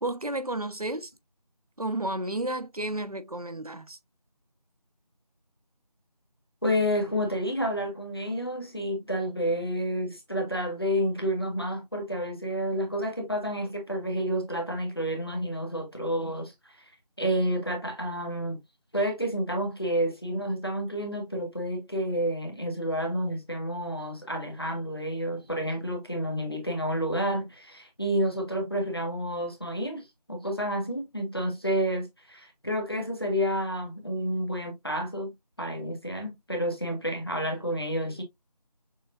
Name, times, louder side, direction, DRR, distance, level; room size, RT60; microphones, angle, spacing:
voice 1, 0.0-1.1 1.8-4.0, right 1 dB, 60° right, 0.6 m, -32 dB
voice 2, 6.6-16.8 17.2-18.6 18.9-38.2, equal, 35° left, 1.2 m, -30 dB
6.4 x 2.5 x 2.4 m
figure-of-eight pair, 180°, 21 cm